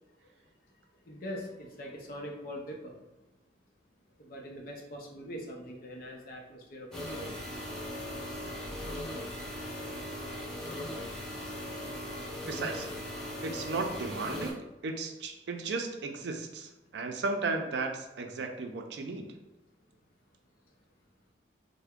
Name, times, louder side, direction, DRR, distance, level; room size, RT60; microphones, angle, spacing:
voice 1, 1.1-3.0 4.2-7.3, equal, 50° left, 0 dB, 0.6 m, -42 dB
sound 1, 6.9-14.5, left 1 dB, 5° left, 0.7 m, -39 dB
voice 2, 12.4-12.9 13.4-19.4, right 3 dB, 70° right, 4 dB, 0.4 m, -35 dB
3.3 x 2.1 x 3.5 m, 1.0 s
head